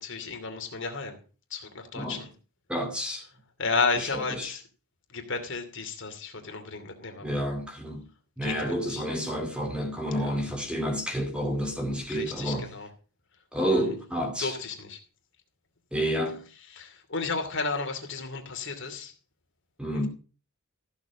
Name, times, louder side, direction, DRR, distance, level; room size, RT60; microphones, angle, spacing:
voice 1, 0.0-1.2 1.5-2.3 3.6-4.6 5.1-7.4 8.4-9.0 10.2-10.5 12.1-12.9 13.6-13.9 14.4-15.0 16.7-19.1, left 4 dB, 55° left, 2.8 m, -33 dB
voice 2, 2.7-3.2 4.3-4.5 7.2-8.1 8.4-12.7 13.5-14.5 15.9-16.5 19.8-20.1, equal, 5° right, 2.5 m, -29 dB
15.0 x 7.3 x 5.1 m
head